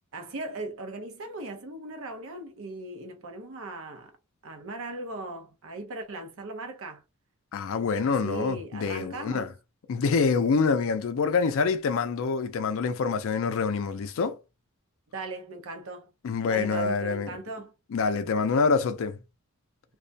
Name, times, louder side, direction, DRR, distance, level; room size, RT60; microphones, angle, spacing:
voice 1, 0.1-4.1 4.4-7.0 8.0-9.5 15.1-16.1 16.5-17.7, right 2 dB, 65° right, 0.6 m, -38 dB
voice 2, 7.5-9.5 9.9-14.4 16.2-17.3 17.9-19.2, left 5 dB, 60° left, 0.4 m, -26 dB
2.3 x 2.1 x 2.6 m
head